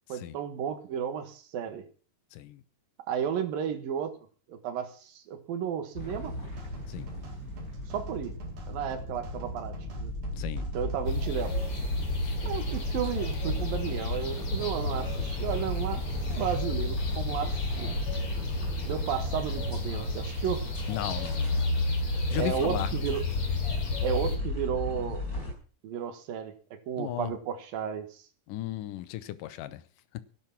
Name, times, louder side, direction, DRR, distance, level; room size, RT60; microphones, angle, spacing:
voice 1, 0.1-1.8 3.1-4.1 4.5-6.3 7.9-8.3 8.7-10.1 10.7-11.5 12.5-16.1 16.4-17.9 18.9-20.6 22.3-23.2 24.0-25.2 25.8-26.5 26.9-28.2, right 8 dB, 90° right, 3.4 m, -33 dB
sound 1, 5.9-25.5, left 1 dB, 25° left, 5.4 m, -37 dB
sound 2, 6.2-11.6, right 3 dB, 55° right, 3.8 m, -47 dB
voice 2, 10.4-10.7 12.2-12.4 20.9-21.7 22.3-22.9 27.0-27.3 28.5-29.8, left 14 dB, 75° left, 2.4 m, -35 dB
sound 3, 11.1-24.4, left 2 dB, 45° left, 3.8 m, -32 dB
15.5 x 11.0 x 5.9 m
omnidirectional pair, 3.9 m